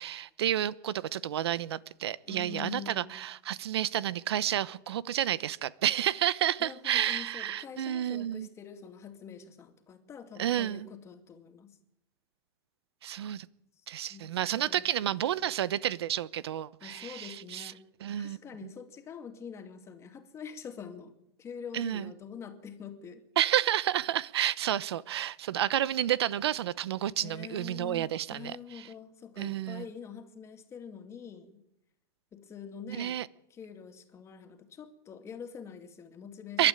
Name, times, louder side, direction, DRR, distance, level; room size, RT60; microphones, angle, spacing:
voice 1, 0.0-8.5 10.4-10.9 13.0-13.5 13.9-17.7 18.0-18.7 21.7-22.1 23.4-28.9 29.4-29.8 32.9-33.3 36.6-36.7, right 11 dB, 90° right, 19 dB, 0.9 m, -30 dB
voice 2, 2.3-3.2 6.6-11.8 14.1-14.9 16.8-17.8 18.2-23.2 27.2-31.6 32.3-33.2 33.5-36.7, left 7 dB, 20° left, 6 dB, 2.6 m, -45 dB
28.5 x 12.0 x 9.2 m, 0.82 s
supercardioid pair, 150°, 13 cm